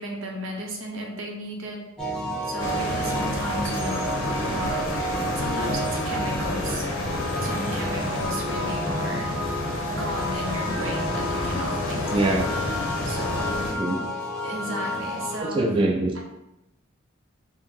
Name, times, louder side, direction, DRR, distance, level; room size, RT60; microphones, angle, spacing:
voice 1, 0.0-1.8 2.4-4.9 5.3-6.9 7.1-9.4 9.9-12.4 13.0-13.6 14.4-15.6 16.1-16.2, right 1 dB, 80° right, 0 dB, 0.8 m, -34 dB
sound 1, 2.0-15.4, equal, 5° left, 0.7 m, -31 dB
sound 2, 2.6-13.7, left 2 dB, 80° left, 0.8 m, -30 dB
voice 2, 12.1-12.5 13.7-14.0 15.4-16.2, right 2 dB, 25° right, 0 dB, 0.3 m, -23 dB
3.8 x 2.0 x 4.4 m, 0.93 s
head